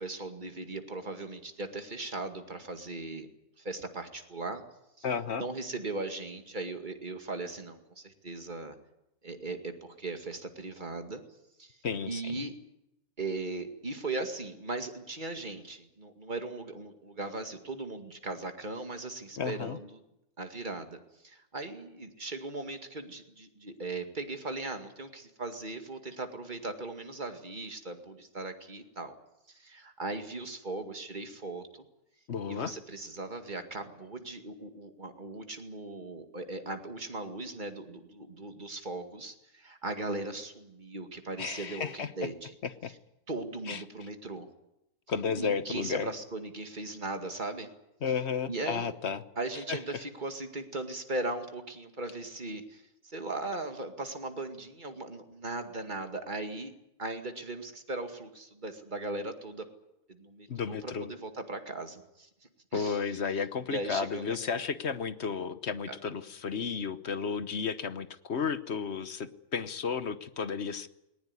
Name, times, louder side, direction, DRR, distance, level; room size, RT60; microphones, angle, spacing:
voice 1, 0.0-3.3 3.6-4.6 5.0-5.1 5.3-8.8 9.2-11.2 11.6-11.8 12.1-12.5 13.2-20.0 20.4-29.2 29.5-31.8 32.5-42.5 43.3-44.5 45.3-47.7 48.5-48.9 49.4-56.7 57.0-59.6 60.1-63.2 63.7-64.6 65.9-66.0, right 2 dB, 30° right, 6 dB, 2.3 m, -38 dB
voice 2, 5.0-5.4 11.8-12.3 19.4-19.8 32.3-32.7 41.4-42.1 42.6-42.9 43.7-43.8 45.1-46.1 48.0-49.2 49.7-49.8 60.5-61.1 62.7-70.9, left 6 dB, 50° left, 13 dB, 1.2 m, -33 dB
20.0 x 19.0 x 9.8 m, 0.85 s
omnidirectional pair, 1.6 m